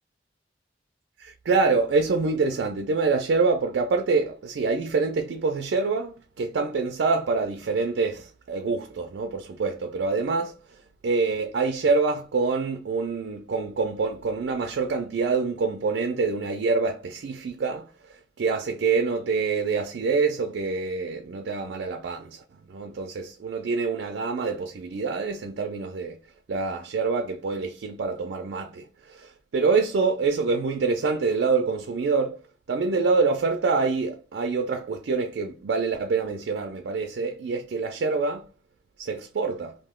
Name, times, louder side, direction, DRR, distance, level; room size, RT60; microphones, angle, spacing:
voice 1, 1.2-10.6 11.0-17.9 18.4-22.4 22.7-26.2 26.5-32.4 32.7-38.5 39.0-39.8, right 4 dB, 70° right, 0.4 m, -26 dB
2.6 x 2.1 x 3.5 m
head